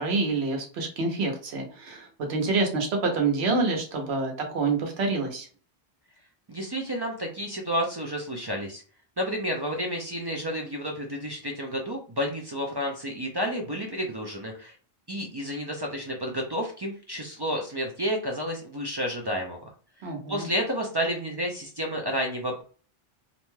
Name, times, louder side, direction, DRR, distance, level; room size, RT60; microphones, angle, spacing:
voice 1, 0.0-5.5 20.0-20.5, right 3 dB, 80° right, 3 dB, 1.0 m, -27 dB
voice 2, 6.5-8.8 9.2-14.7 15.1-19.6 20.0-22.6, equal, 45° right, 1 dB, 0.3 m, -30 dB
2.6 x 2.2 x 3.1 m, 0.41 s
omnidirectional pair, 1.1 m